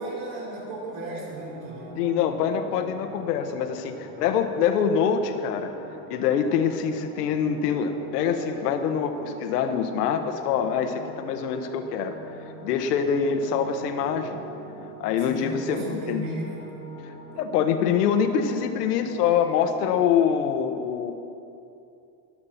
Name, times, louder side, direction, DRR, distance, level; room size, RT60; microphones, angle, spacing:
voice 1, 0.0-2.1 15.3-16.7, right 2 dB, 55° right, -4 dB, 4.0 m, -35 dB
sound 1, 0.9-20.3, right 1 dB, 5° left, 1.8 m, -43 dB
voice 2, 2.0-5.7 6.1-12.2 12.6-14.4 15.0-16.2 17.4-21.1, left 7 dB, 85° left, 7 dB, 1.4 m, -25 dB
23.0 x 8.7 x 4.4 m, 2.7 s
supercardioid pair, 160°, 46 cm